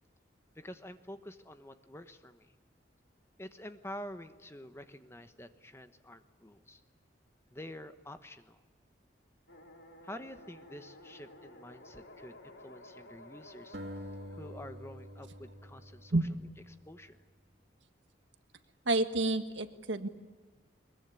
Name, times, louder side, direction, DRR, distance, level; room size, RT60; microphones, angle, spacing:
voice 1, 0.5-2.5 3.4-6.8 7.5-8.6 10.0-13.8 14.3-16.2 16.7-17.2, left 1 dB, 15° left, 9 dB, 1.1 m, -48 dB
sound 1, 9.5-16.4, left 1 dB, 70° left, 2.6 m, -55 dB
sound 2, 13.7-17.0, equal, 60° right, 2.8 m, -47 dB
voice 2, 18.9-20.1, right 2 dB, 80° right, 9 dB, 1.6 m, -29 dB
22.0 x 22.0 x 9.9 m, 1.3 s
head